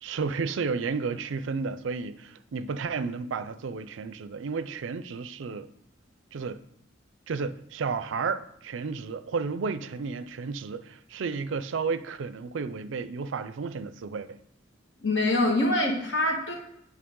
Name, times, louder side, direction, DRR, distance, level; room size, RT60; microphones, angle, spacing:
voice 1, 0.0-5.7 6.3-6.6 7.3-14.4, right 5 dB, 70° right, 0.4 m, -32 dB
voice 2, 15.0-16.5, left 1 dB, 70° left, 1.8 m, -24 dB
8.5 x 5.6 x 3.7 m
head